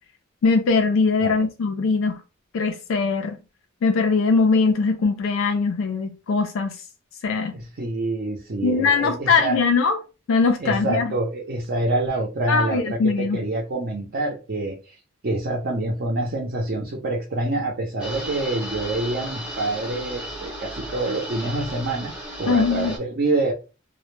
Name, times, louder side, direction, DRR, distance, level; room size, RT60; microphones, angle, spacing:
voice 1, 0.4-2.2 2.5-3.4 3.8-6.8 7.2-7.5 8.6-10.0 10.3-11.1 12.5-13.4 22.5-23.0, left 4 dB, 70° left, 0.3 m, -21 dB
voice 2, 7.5-9.6 10.6-14.9 15.2-23.5, right 2 dB, 50° right, 0.5 m, -26 dB
sound 1, 18.0-23.0, right 1 dB, 5° right, 0.6 m, -34 dB
2.1 x 2.0 x 3.0 m
head